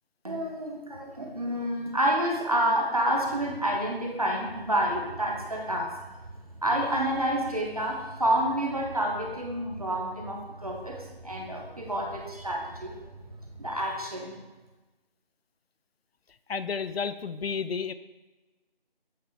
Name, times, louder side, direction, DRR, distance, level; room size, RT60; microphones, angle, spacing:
voice 1, 0.2-5.9 6.6-12.9 13.6-14.3, right 1 dB, 35° right, 0 dB, 0.9 m, -29 dB
sound 1, 4.5-14.0, right 2 dB, 75° right, 0.9 m, -46 dB
voice 2, 16.5-17.9, left 6 dB, 75° left, 12 dB, 0.5 m, -31 dB
8.1 x 3.2 x 4.6 m, 1.1 s
figure-of-eight pair, 175°, 30 cm